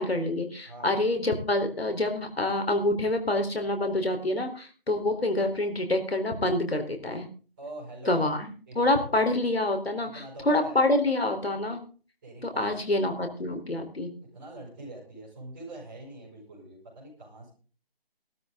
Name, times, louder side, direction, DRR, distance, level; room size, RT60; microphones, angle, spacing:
voice 1, 0.0-7.3 8.1-8.4 8.8-11.8 12.4-14.1, left 2 dB, 85° left, 6 dB, 4.1 m, -27 dB
voice 2, 7.6-8.3 8.7-9.1 10.0-10.8 12.2-12.7 14.2-17.5, right 2 dB, 10° right, -5 dB, 6.1 m, -44 dB
18.0 x 13.0 x 3.9 m, 0.38 s
figure-of-eight pair, 175°, 30 cm